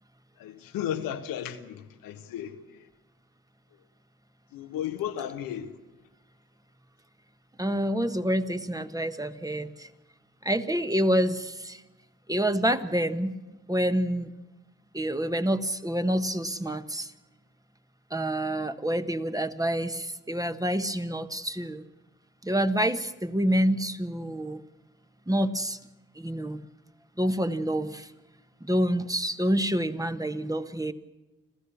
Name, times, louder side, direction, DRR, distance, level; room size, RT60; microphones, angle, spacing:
voice 1, 0.4-2.9 4.5-5.8, left 10 dB, 85° left, 1.4 m, -34 dB
voice 2, 7.6-9.9 10.4-11.8 12.3-13.3 13.7-14.3 14.9-17.1 18.1-21.9 22.4-24.6 25.3-25.8 26.2-26.6 27.2-28.1 28.6-30.9, equal, 10° right, 1.4 m, -27 dB
27.0 x 15.0 x 7.1 m
supercardioid pair, 45°, 34 cm